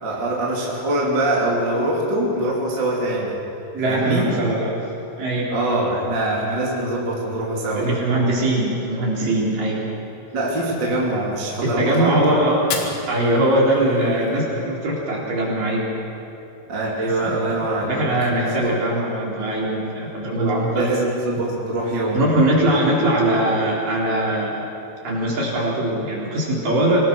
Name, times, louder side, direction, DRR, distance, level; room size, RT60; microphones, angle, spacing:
voice 1, 0.0-3.4 3.9-4.3 5.5-7.9 10.3-12.2 16.7-18.1 18.4-18.8 20.7-22.2, right 1 dB, 30° right, -4 dB, 3.0 m, -23 dB
voice 2, 3.7-4.8 5.2-5.5 7.7-9.8 11.6-15.9 17.2-17.4 17.8-20.9 22.1-24.7 25.0-27.0, right 1 dB, 50° right, -4 dB, 5.5 m, -21 dB
Fire, 12.5-14.6, left 6 dB, 75° left, 4.2 m, -33 dB
25.5 x 20.0 x 6.2 m, 2.9 s
omnidirectional pair, 5.2 m